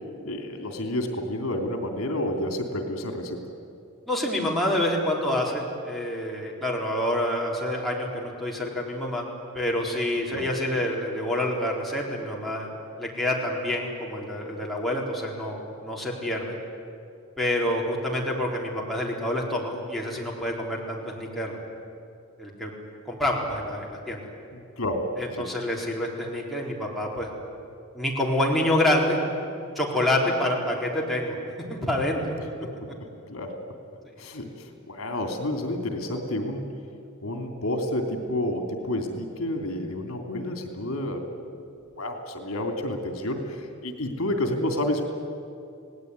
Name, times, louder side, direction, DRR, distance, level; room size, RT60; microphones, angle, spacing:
voice 1, 0.2-3.4 10.3-10.5 24.5-25.1 25.4-25.5 32.6-32.7 33.3-33.5 34.2-36.7 37.2-41.2 41.5-41.6 42.0-45.1, left 1 dB, 75° left, 4 dB, 3.1 m, -30 dB
voice 2, 4.1-9.3 9.5-12.7 13.0-16.6 17.4-21.6 22.4-22.7 23.1-24.2 25.2-27.3 27.9-29.2 29.8-31.3 31.7-32.3 34.0-34.1, left 1 dB, ahead, -3 dB, 4.1 m, -27 dB
29.0 x 18.5 x 9.6 m, 2.5 s
head